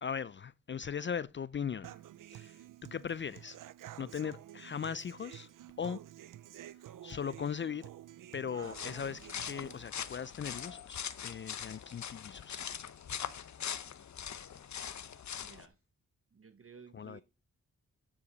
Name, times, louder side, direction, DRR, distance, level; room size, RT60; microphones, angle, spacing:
voice 1, 0.0-1.9 2.3-3.6 4.0-5.5 5.8-6.0 7.0-7.9 8.3-12.6 16.9-17.2, left 7 dB, 35° left, 0.4 m, -39 dB
Human voice / Acoustic guitar, 1.8-9.8, right 12 dB, 80° right, 0.5 m, -50 dB
sound 1, 8.6-15.7, left 8 dB, 60° left, 0.8 m, -42 dB
voice 2, 13.4-14.0 15.4-15.8 16.3-17.2, right 6 dB, 45° right, 0.9 m, -57 dB
9.8 x 5.0 x 3.9 m
cardioid pair, 45°, 32 cm